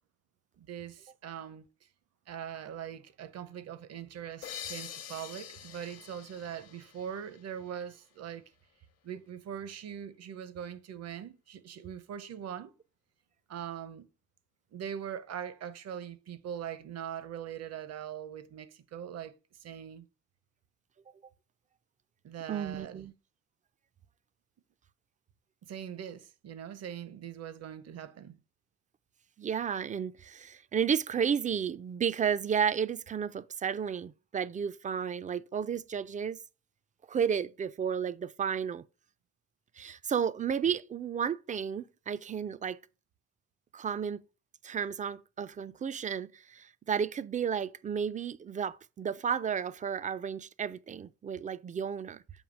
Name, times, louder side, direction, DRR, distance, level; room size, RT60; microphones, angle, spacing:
voice 1, 0.6-1.6 2.3-8.5 9.0-12.7 13.5-14.1 14.7-19.3 19.6-20.1 22.2-23.0 25.6-28.4, right 9 dB, 55° right, 0.7 m, -41 dB
sound 1, 4.4-8.0, left 9 dB, 55° left, 0.8 m, -46 dB
voice 2, 22.5-23.1 29.4-36.4 37.1-38.8 39.8-42.8 43.7-44.2 44.6-52.2, right 7 dB, 25° right, 0.3 m, -32 dB
7.2 x 2.7 x 5.1 m
cardioid pair, 90°, 30 cm